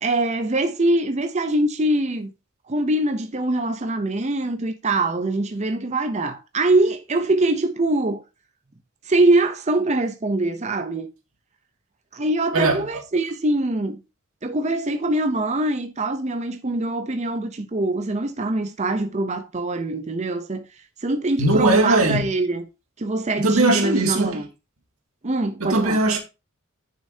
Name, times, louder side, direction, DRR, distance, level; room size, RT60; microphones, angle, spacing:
voice 1, 0.0-2.3 2.7-8.2 9.0-11.1 12.1-14.0 14.4-20.7 21.0-22.6 23.0-24.5 25.2-26.0, right 2 dB, 30° right, 0.6 m, -23 dB
voice 2, 12.5-12.9 21.4-22.3 23.4-24.4 25.6-26.2, right 2 dB, 90° right, 2.2 m, -19 dB
10.0 x 6.5 x 2.7 m
head